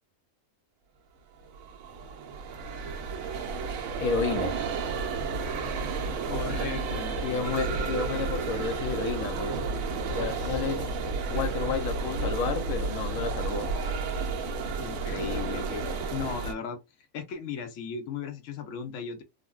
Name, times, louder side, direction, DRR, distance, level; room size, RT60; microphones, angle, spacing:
sound 1, 1.4-16.5, right 4 dB, 80° right, 1.0 m, -32 dB
voice 1, 4.0-4.6 7.2-9.6 10.1-10.9 11.3-13.7 15.8-15.9, left 5 dB, 85° left, 1.1 m, -31 dB
voice 2, 6.3-8.0 10.2-11.2 14.8-16.8 17.1-19.2, left 6 dB, 70° left, 1.0 m, -37 dB
3.7 x 2.1 x 2.3 m
omnidirectional pair, 1.4 m